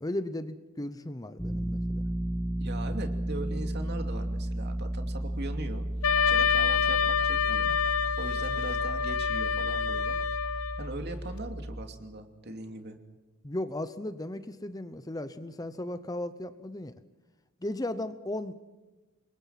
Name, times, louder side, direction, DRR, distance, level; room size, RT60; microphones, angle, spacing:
voice 1, 0.0-2.0 13.4-17.0 17.6-18.5, left 1 dB, 15° left, 12 dB, 0.7 m, -36 dB
sound 1, 1.4-11.9, right 1 dB, 5° right, 1.4 m, -34 dB
voice 2, 2.6-5.9 6.3-7.7 8.2-10.2 10.5-13.0, right 2 dB, 50° right, 5 dB, 2.7 m, -40 dB
Wind instrument woodwind instrument, 6.0-10.9, left 7 dB, 75° left, 0.8 m, -27 dB
27.5 x 23.0 x 5.9 m, 1.2 s
head